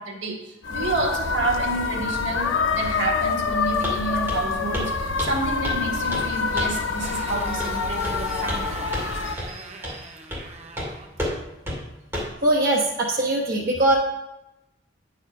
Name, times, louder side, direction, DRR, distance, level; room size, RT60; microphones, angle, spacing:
voice 1, 0.0-8.8 9.2-10.1, right 3 dB, 80° right, 0 dB, 1.8 m, -30 dB
sound 1, 0.6-9.4, left 5 dB, 85° left, 0.7 m, -26 dB
Walk footsteps, 3.8-4.0 4.3-4.5 4.7-4.9 5.2-5.8 6.1-6.3 6.6-6.8 7.6-7.8 8.0-8.6 8.9-9.1 9.4-9.5 9.8-10.0 10.3-10.5 10.8-10.9 11.2-11.4 11.7-11.8 12.1-12.4, equal, 15° right, 2.6 m, -30 dB
Motorcycle, 5.1-11.2, right 3 dB, 35° right, 0.8 m, -39 dB
voice 2, 12.4-14.0, right 1 dB, 50° right, -4 dB, 1.1 m, -21 dB
9.4 x 4.9 x 5.3 m, 0.94 s
head